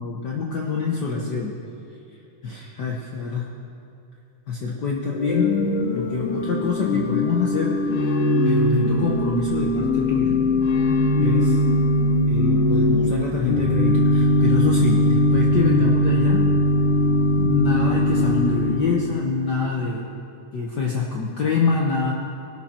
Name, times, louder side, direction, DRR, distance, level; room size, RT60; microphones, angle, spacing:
voice 1, 0.0-1.6 2.4-3.5 4.5-5.5 5.9-8.2 8.4-10.3 11.2-11.6 12.3-16.4 17.4-20.1 20.5-22.1, left 4 dB, 65° left, -2 dB, 1.0 m, -25 dB
Organ / Church bell, 5.1-19.3, left 1 dB, 85° left, 2.3 m, -20 dB
20.0 x 12.0 x 4.4 m, 2.7 s
omnidirectional pair, 3.4 m